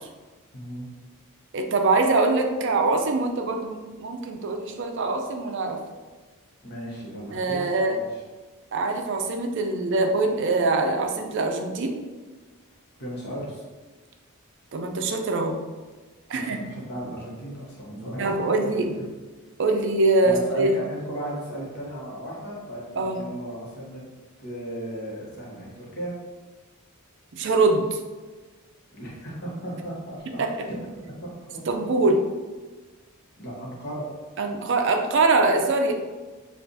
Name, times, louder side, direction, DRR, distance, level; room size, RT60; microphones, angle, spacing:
voice 1, 0.5-0.9 6.6-8.2 13.0-13.6 16.3-18.9 20.2-24.0 24.4-26.1 28.9-31.6 33.4-34.1, right 1 dB, 50° left, -5 dB, 1.3 m, -36 dB
voice 2, 1.5-5.8 7.3-8.0 8.7-11.9 14.7-15.6 16.3-16.6 18.2-18.9 19.6-20.7 23.0-23.2 27.3-28.0 30.4-30.5 31.7-32.2 34.4-35.9, right 3 dB, 55° right, 4 dB, 0.4 m, -23 dB
6.5 x 2.5 x 2.7 m, 1.3 s
head